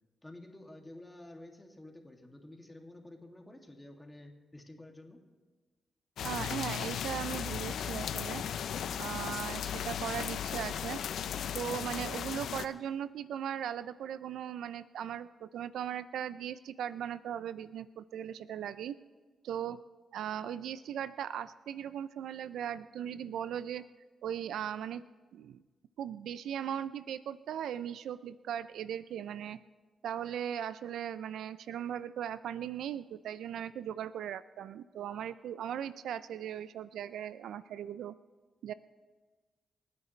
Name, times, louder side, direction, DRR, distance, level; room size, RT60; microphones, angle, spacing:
voice 1, 0.2-5.2, left 1 dB, 10° left, 1 dB, 2.3 m, -51 dB
sound 1, 6.2-12.7, left 8 dB, 80° left, 0.6 m, -36 dB
voice 2, 6.2-8.4 9.0-11.0 11.5-19.0 19.4-19.8 20.1-23.8 24.2-25.0 25.3-25.6 26.0-29.6 30.0-38.1 38.6-38.7, right 9 dB, 90° right, 15 dB, 0.4 m, -38 dB
28.5 x 9.7 x 3.2 m, 1.3 s
cardioid pair, 80°, 0 cm